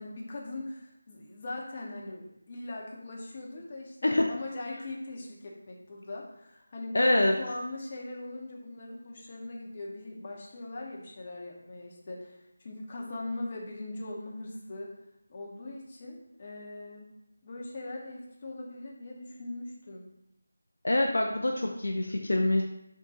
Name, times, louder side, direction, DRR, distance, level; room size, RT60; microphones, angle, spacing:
voice 1, 0.0-14.9 15.3-17.1 17.4-20.1, left 2 dB, 35° left, -2 dB, 0.7 m, -40 dB
voice 2, 6.9-7.4 20.8-22.6, left 1 dB, 65° left, 2 dB, 0.4 m, -25 dB
3.6 x 2.3 x 3.9 m, 0.87 s
figure-of-eight pair, 165°, 0 cm